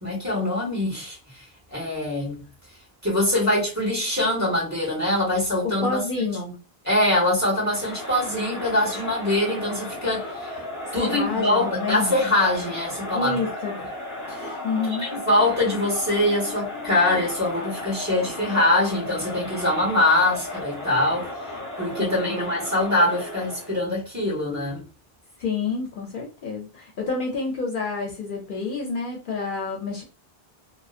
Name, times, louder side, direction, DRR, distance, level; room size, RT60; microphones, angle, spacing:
voice 1, 0.0-1.5 1.7-2.4 3.0-6.0 6.8-10.6 10.9-13.4 14.3-14.5 15.0-21.5 21.8-24.8, left 1 dB, 15° right, 0.9 m, -23 dB
voice 2, 5.6-6.6 10.9-12.1 13.1-13.8 14.6-15.1 22.0-22.5 25.4-30.0, left 4 dB, 60° left, 0.7 m, -28 dB
Crowd, 7.6-23.8, left 1 dB, 15° left, 1.2 m, -35 dB
2.6 x 2.0 x 2.4 m
omnidirectional pair, 1.0 m